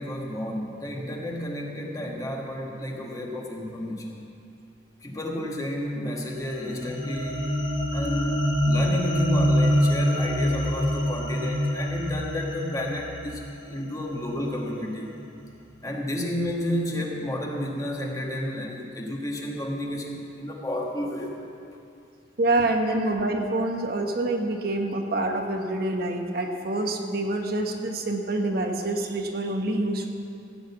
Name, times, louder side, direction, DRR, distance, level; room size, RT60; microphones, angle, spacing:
voice 1, 0.0-4.3 5.0-7.5 7.9-8.4 8.6-15.1 15.8-21.3, left 1 dB, 20° left, 0 dB, 1.3 m, -31 dB
sound 1, 6.3-14.8, equal, 80° left, 2.1 m, -26 dB
voice 2, 22.4-30.1, right 2 dB, 50° right, 3 dB, 1.0 m, -26 dB
15.5 x 6.5 x 8.3 m, 2.5 s
head